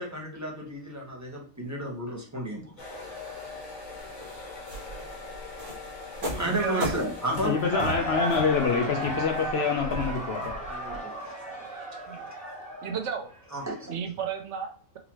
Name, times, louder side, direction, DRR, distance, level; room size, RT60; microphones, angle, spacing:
voice 1, 0.0-2.7 6.2-7.9 10.7-11.5 13.5-14.0, right 1 dB, 15° right, -1 dB, 0.9 m, -33 dB
sound 1, 2.8-8.3, left 3 dB, 80° left, 1.9 m, -42 dB
sound 2, 4.0-11.0, equal, 40° right, 1.1 m, -37 dB
voice 2, 6.4-7.0 7.7-8.0 12.1-12.2 12.8-13.3 13.9-15.0, right 7 dB, 70° right, 5 dB, 0.8 m, -33 dB
Cheering / Crowd, 7.2-13.9, right 1 dB, 5° left, 1.4 m, -35 dB
voice 3, 7.4-10.5, left 5 dB, 60° left, 3 dB, 0.7 m, -26 dB
3.9 x 2.8 x 2.9 m, 0.43 s
omnidirectional pair, 1.4 m